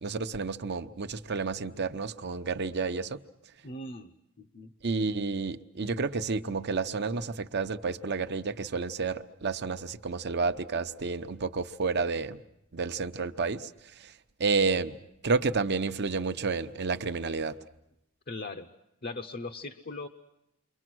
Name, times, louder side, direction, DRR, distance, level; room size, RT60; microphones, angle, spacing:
voice 1, 0.0-3.2 4.8-12.4 12.7-13.7 14.0-14.1 14.4-15.0 15.2-17.6, right 4 dB, 55° right, 9 dB, 0.8 m, -30 dB
voice 2, 3.6-4.7 18.3-18.7 19.0-20.1, left 2 dB, 45° left, 5 dB, 0.8 m, -39 dB
29.0 x 23.5 x 6.2 m, 0.87 s
head